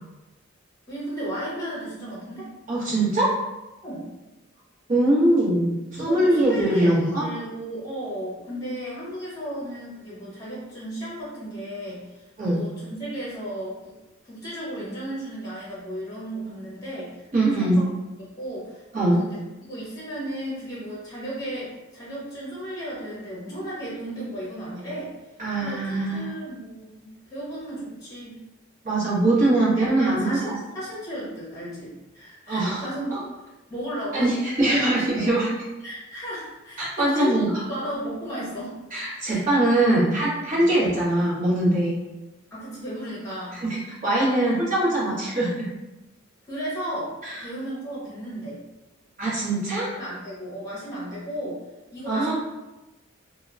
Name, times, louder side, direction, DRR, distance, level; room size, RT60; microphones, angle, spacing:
voice 1, 0.9-2.5 3.8-4.1 6.0-13.9 14.2-17.8 18.2-25.1 25.6-28.4 29.8-33.2 33.7-34.3 34.7-35.4 35.8-38.7 39.2-39.4 40.5-40.8 42.5-43.6 46.4-48.6 49.7-51.6 51.9-52.3, right 1 dB, 15° left, -6 dB, 0.8 m, -34 dB
voice 2, 2.7-3.3 4.9-7.2 12.4-12.6 17.3-17.8 18.9-19.2 25.4-26.3 28.8-30.5 32.5-32.8 33.1-33.2 34.1-35.5 36.8-37.6 38.9-42.0 43.6-45.6 47.2-47.4 49.2-49.9 52.1-52.3, right 1 dB, 40° right, -8 dB, 1.0 m, -22 dB
2.8 x 2.1 x 2.4 m, 1.0 s
head